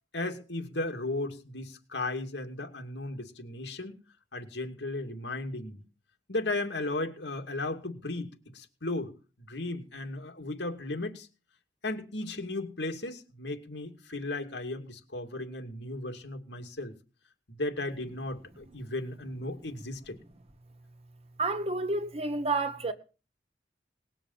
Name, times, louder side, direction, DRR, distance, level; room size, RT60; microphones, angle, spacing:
voice 1, 0.1-4.0 4.3-5.8 6.3-9.1 9.5-11.3 11.8-16.9 17.5-20.2, left 2 dB, 85° left, 2.5 m, -35 dB
voice 2, 21.4-22.9, right 3 dB, 35° right, 1.4 m, -30 dB
19.5 x 7.0 x 7.3 m
head